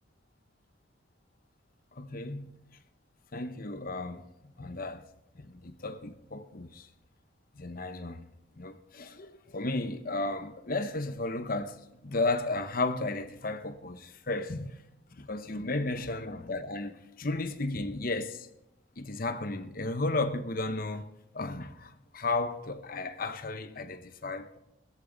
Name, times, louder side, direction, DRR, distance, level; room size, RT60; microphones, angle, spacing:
voice 1, 2.0-2.5 3.3-4.2 4.6-5.0 5.3-6.9 7.5-8.3 8.6-11.8 12.0-14.8 15.2-18.5 19.0-21.1 21.3-24.6, left 2 dB, 50° left, 0.9 m, -34 dB
16.0 x 14.0 x 4.0 m
head